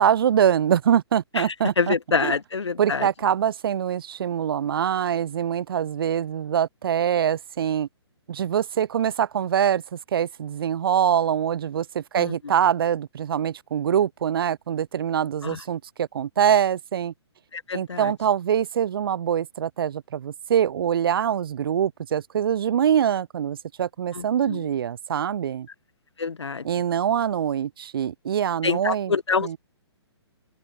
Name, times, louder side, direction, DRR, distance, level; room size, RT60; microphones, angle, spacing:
voice 1, 0.0-2.3 2.8-7.9 8.3-17.1 17.7-25.7 26.6-29.1 29.4-29.6, right 9 dB, 55° right, 3.1 m, -24 dB
voice 2, 1.8-3.1 12.2-12.3 15.4-15.6 17.5-18.1 24.2-24.6 26.2-26.6 28.6-29.6, left 5 dB, 80° left, 0.9 m, -26 dB
figure-of-eight pair, 130°, 14 cm